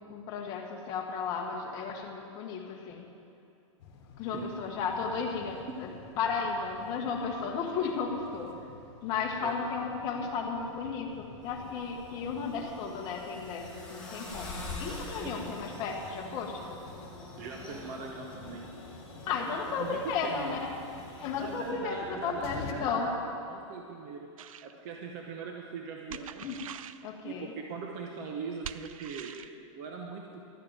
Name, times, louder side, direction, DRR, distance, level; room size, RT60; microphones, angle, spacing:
voice 1, 0.0-3.1 4.2-5.9 6.2-8.5 9.0-16.6 19.3-20.7 21.1-23.1 26.4-26.6 27.0-27.5, left 5 dB, 25° left, 1 dB, 1.2 m, -34 dB
sound 1, 3.8-22.7, left 5 dB, 50° left, 1.4 m, -50 dB
sound 2, 11.4-21.7, left 2 dB, 5° left, 1.9 m, -45 dB
voice 2, 17.4-18.7 19.3-20.5 21.4-23.2 23.5-24.3 24.6-26.4 27.2-30.4, right 5 dB, 30° right, 1 dB, 0.8 m, -41 dB
sound 3, 24.4-24.7 26.1-27.0 28.6-29.5, right 9 dB, 85° right, 0.5 m, -43 dB
12.5 x 6.7 x 8.9 m, 2.5 s
supercardioid pair, 175°, 17 cm